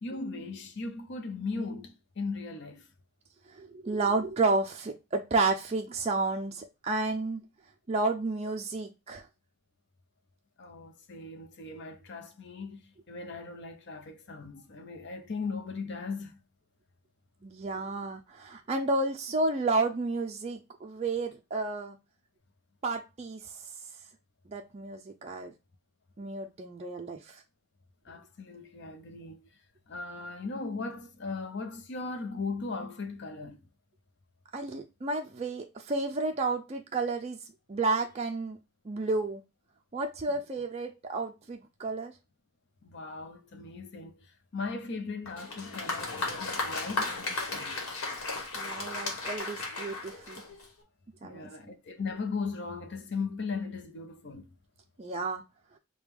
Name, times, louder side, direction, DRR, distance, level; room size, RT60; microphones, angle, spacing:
voice 1, 0.0-2.9 10.6-16.4 28.0-29.4 29.9-33.6 42.8-44.3 44.5-47.8 51.2-54.5, left 4 dB, 50° left, 0.6 m, -38 dB
voice 2, 3.5-7.4 7.9-9.3 17.4-22.0 22.8-23.6 24.5-25.5 26.2-27.4 34.5-37.4 37.7-38.6 38.8-39.4 39.9-42.1 48.5-50.4 51.2-51.5 55.0-55.4, right 3 dB, 30° right, 0.4 m, -31 dB
Applause, 45.3-50.8, left 3 dB, 75° left, 1.2 m, -35 dB
4.8 x 2.2 x 3.4 m
head